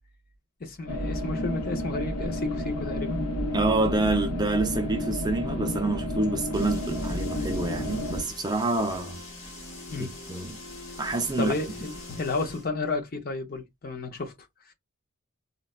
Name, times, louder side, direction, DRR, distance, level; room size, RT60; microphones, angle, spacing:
voice 1, 0.6-3.3 9.9-10.1 11.4-14.3 14.7-14.8, left 3 dB, 40° left, 0.6 m, -32 dB
sound 1, 0.9-8.2, left 1 dB, 80° left, 0.8 m, -31 dB
voice 2, 3.5-9.2 10.0-10.6 11.0-11.6, right 2 dB, 20° right, 0.4 m, -27 dB
sound 2, 6.5-12.7, left 2 dB, 65° left, 1.3 m, -42 dB
4.0 x 2.1 x 2.3 m
head